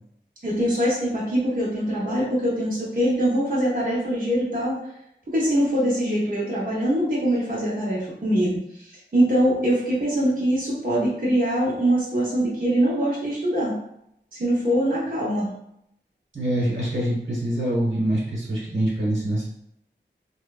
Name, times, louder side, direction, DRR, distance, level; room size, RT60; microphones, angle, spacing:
voice 1, 0.4-4.8 5.3-13.7 14.4-15.5, equal, 45° right, -7 dB, 0.8 m, -23 dB
voice 2, 16.3-19.4, right 1 dB, 80° right, -6 dB, 1.1 m, -25 dB
3.0 x 2.1 x 2.3 m, 0.77 s
wide cardioid pair, 50°, 20 cm